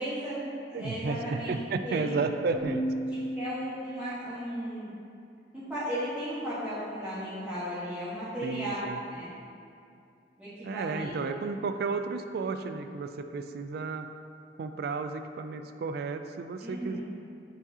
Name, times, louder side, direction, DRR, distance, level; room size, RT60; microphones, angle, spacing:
voice 1, 0.0-1.5 1.8-2.2 3.1-4.9 5.5-9.3 10.4-11.2 16.6-17.0, equal, 5° right, -15 dB, 1.2 m, -35 dB
voice 2, 0.7-2.9 8.4-9.0 10.6-14.1 14.6-17.0, right 4 dB, 60° right, 8 dB, 0.3 m, -33 dB
Keyboard (musical), 2.5-4.3, equal, 20° left, 1.2 m, -34 dB
7.9 x 4.8 x 2.8 m, 2.5 s
head